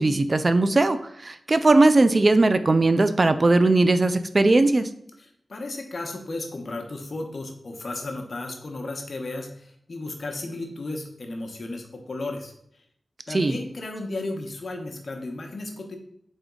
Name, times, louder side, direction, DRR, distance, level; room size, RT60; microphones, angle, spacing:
voice 1, 0.0-4.9 13.3-13.5, right 2 dB, 45° right, 11 dB, 0.3 m, -19 dB
voice 2, 5.2-12.5 13.3-16.0, left 2 dB, 60° left, 3 dB, 0.8 m, -34 dB
3.9 x 3.6 x 3.7 m, 0.72 s
cardioid pair, 50°, 0 cm